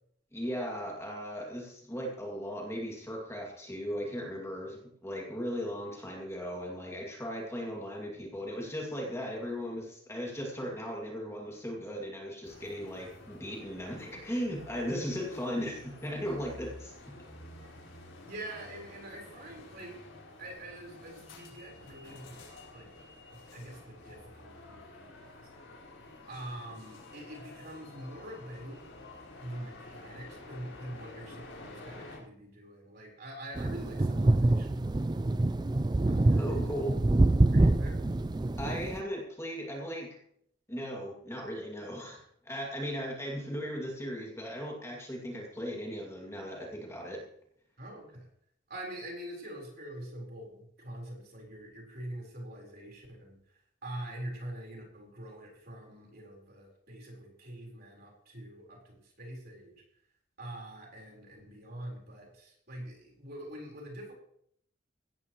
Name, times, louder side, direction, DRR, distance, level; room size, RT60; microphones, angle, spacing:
voice 1, 0.3-17.1 36.4-37.0 38.6-40.1 40.7-47.2, equal, 15° left, -1 dB, 2.4 m, -37 dB
sound 1, 12.4-32.2, left 2 dB, 85° left, 4.8 m, -50 dB
voice 2, 18.2-20.0 20.4-22.4 22.7-22.9 23.5-25.2 26.3-28.8 29.4-35.5 36.0-36.6 37.5-38.0 47.8-48.3 48.7-59.8 60.4-64.1, right 1 dB, 50° right, -1 dB, 4.3 m, -44 dB
sound 2, 33.6-39.0, right 2 dB, 20° right, 0.4 m, -26 dB
16.5 x 13.5 x 3.1 m, 0.69 s
head